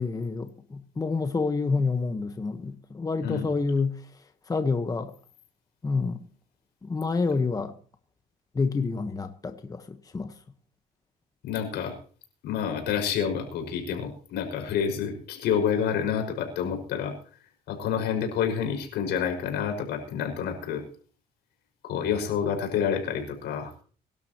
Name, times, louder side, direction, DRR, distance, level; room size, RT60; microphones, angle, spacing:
voice 1, 0.0-4.0 4.5-5.1 5.8-6.2 6.8-7.7 8.5-10.3, left 4 dB, 20° left, 1.2 m, -28 dB
voice 2, 11.4-11.9 12.4-17.1 17.7-20.8 21.8-23.7, left 7 dB, 80° left, 5.5 m, -28 dB
24.0 x 12.0 x 3.0 m
cardioid pair, 110°, 17 cm